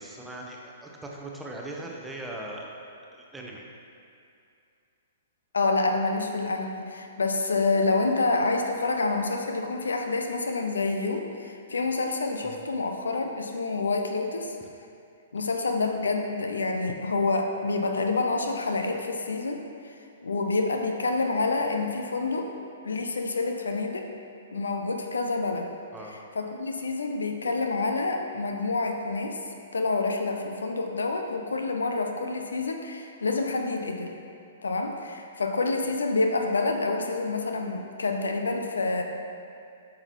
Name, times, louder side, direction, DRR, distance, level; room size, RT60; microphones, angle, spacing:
voice 1, 0.0-2.7 3.1-3.7 12.4-12.6 25.9-26.1, right 1 dB, 5° right, -2 dB, 0.8 m, -39 dB
voice 2, 5.5-14.6 15.3-19.9 20.2-22.5 22.8-24.1 24.5-25.7 26.4-29.4 29.7-34.1 34.6-39.0, left 3 dB, 70° left, 4 dB, 0.6 m, -28 dB
8.6 x 6.1 x 3.0 m, 2.5 s
figure-of-eight pair, 115°, 0 cm